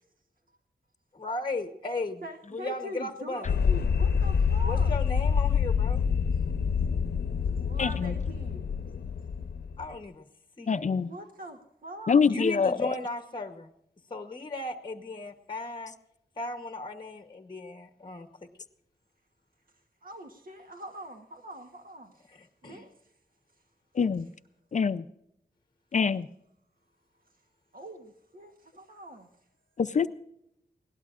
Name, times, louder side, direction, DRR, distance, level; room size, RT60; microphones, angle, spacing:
voice 1, 1.1-3.5 4.6-6.1 9.8-10.2 10.6-11.0 12.3-13.7 14.1-15.9 16.4-18.5 22.3-22.8, left 2 dB, 30° left, 7 dB, 1.0 m, -36 dB
voice 2, 2.2-5.0 7.6-8.6 11.1-12.2 20.0-22.1 22.6-22.9 27.7-29.3 30.0-30.1, right 1 dB, 60° right, 5 dB, 1.2 m, -43 dB
sound 1, 3.4-9.8, left 6 dB, 85° left, 0.7 m, -26 dB
voice 3, 7.8-8.1 10.7-11.1 12.1-12.9 24.0-24.3 24.7-25.0 25.9-26.3 29.8-30.1, left 5 dB, 45° left, 12 dB, 0.5 m, -25 dB
20.5 x 17.5 x 2.5 m, 0.77 s
wide cardioid pair, 125°, 17 cm